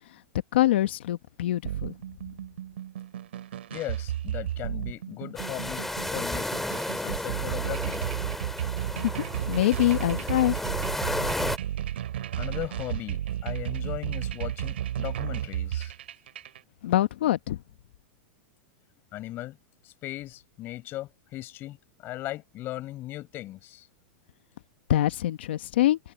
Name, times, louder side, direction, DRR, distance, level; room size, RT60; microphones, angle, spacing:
voice 1, 0.5-1.9 8.9-10.6 16.8-17.6 24.9-26.0, left 14 dB, 75° left, 1.2 m, -24 dB
sound 1, 1.6-16.6, right 11 dB, 85° right, 3.2 m, -33 dB
voice 2, 3.7-6.6 7.0-8.0 12.4-15.9 19.1-19.6 19.8-23.9, left 15 dB, 40° left, 5.9 m, -38 dB
sound 2, 5.4-11.6, left 1 dB, 5° left, 2.0 m, -33 dB
hypercardioid pair, 130°, 6 cm